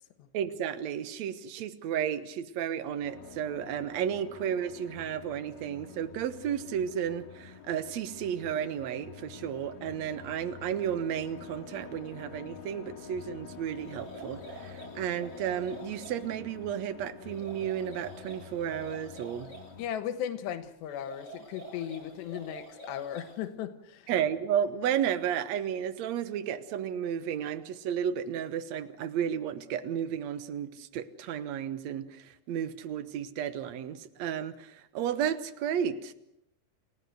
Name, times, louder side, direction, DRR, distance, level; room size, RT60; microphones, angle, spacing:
voice 1, 0.3-19.5 24.1-36.1, right 9 dB, 75° right, 12 dB, 1.6 m, -33 dB
sound 1, 3.0-19.9, left 6 dB, 60° left, 3.4 m, -48 dB
sound 2, 13.8-16.2 17.3-19.7 20.9-23.4, right 2 dB, 35° left, 6.4 m, -47 dB
voice 2, 19.8-24.1, left 10 dB, 85° left, 9 dB, 3.4 m, -36 dB
30.0 x 16.5 x 7.9 m, 0.83 s
omnidirectional pair, 4.8 m